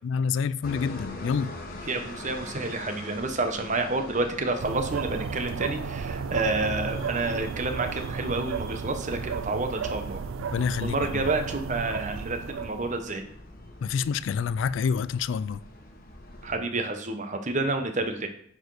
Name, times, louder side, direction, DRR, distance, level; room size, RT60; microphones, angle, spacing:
voice 1, 0.0-1.5 10.5-11.2 13.8-15.6, left 6 dB, 65° left, 0.3 m, -27 dB
sound 1, 0.6-16.6, left 1 dB, 45° left, 1.3 m, -43 dB
voice 2, 1.8-10.2 10.8-13.3 16.4-18.3, right 2 dB, 35° right, 1.0 m, -29 dB
sound 2, 4.6-13.1, right 6 dB, 80° right, 0.4 m, -34 dB
9.5 x 4.6 x 4.7 m
head